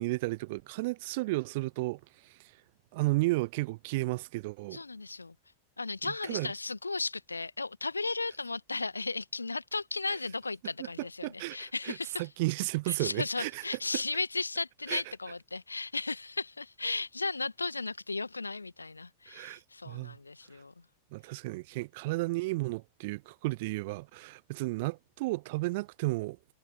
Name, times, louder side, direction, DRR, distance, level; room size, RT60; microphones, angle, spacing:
voice 1, 0.0-2.4 2.9-4.8 6.0-6.5 10.8-13.6 14.9-15.0 19.3-19.6 19.9-20.2 21.1-26.4, right 22 dB, 50° right, 0.9 m, -33 dB
voice 2, 4.7-5.3 5.8-12.2 12.9-20.7, left 3 dB, 80° left, 1.7 m, -35 dB
figure-of-eight pair, 90°, 0 cm